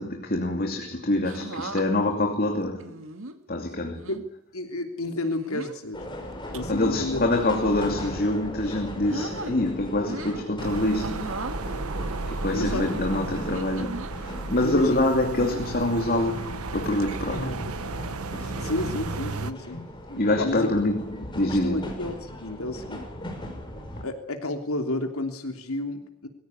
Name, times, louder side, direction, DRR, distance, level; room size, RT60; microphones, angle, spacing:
voice 1, 0.0-3.0 3.5-4.1 6.7-11.4 12.3-17.6 20.1-21.9, left 1 dB, 45° left, 2.7 m, -26 dB
sound 1, 1.2-1.8 2.8-3.4 3.9-4.2 5.2-5.8 6.3-6.6 7.3-8.2 8.6-9.5 10.0-10.5 11.0-11.6 12.6-14.1 15.4-15.8 16.4-16.7 17.0-17.1 18.7-19.1 20.1-20.4, right 2 dB, 65° right, 2.3 m, -37 dB
voice 2, 4.1-6.1 6.5-7.2 12.5-12.8 14.6-15.1 17.3-17.6 18.4-19.8 20.3-20.7 21.4-23.1 24.0-26.3, left 2 dB, 80° left, 3.2 m, -31 dB
sound 2, 5.9-24.0, left 1 dB, 20° left, 5.4 m, -39 dB
sound 3, 10.6-19.5, right 3 dB, 85° right, 1.2 m, -34 dB
23.5 x 15.5 x 9.7 m
head